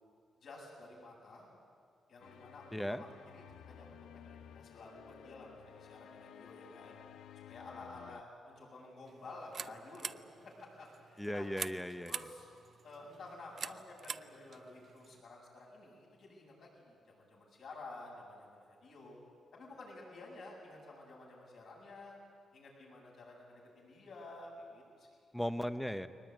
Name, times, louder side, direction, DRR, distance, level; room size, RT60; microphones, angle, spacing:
voice 1, 0.4-1.5 2.1-3.1 3.3-3.9 4.1-5.5 5.7-7.0 7.5-11.5 12.1-12.5 12.8-19.2 19.5-22.2 22.5-25.1, left 2 dB, 60° left, -2 dB, 7.8 m, -52 dB
sound 1, 2.2-8.2, left 10 dB, 90° left, 0.5 m, -55 dB
voice 2, 2.7-3.0 11.2-12.1 25.3-26.1, equal, 5° left, 11 dB, 0.9 m, -37 dB
sound 2, 9.0-15.2, right 6 dB, 45° right, 0.5 m, -47 dB
22.0 x 20.0 x 9.3 m, 2.3 s
cardioid pair, 125°, 0 cm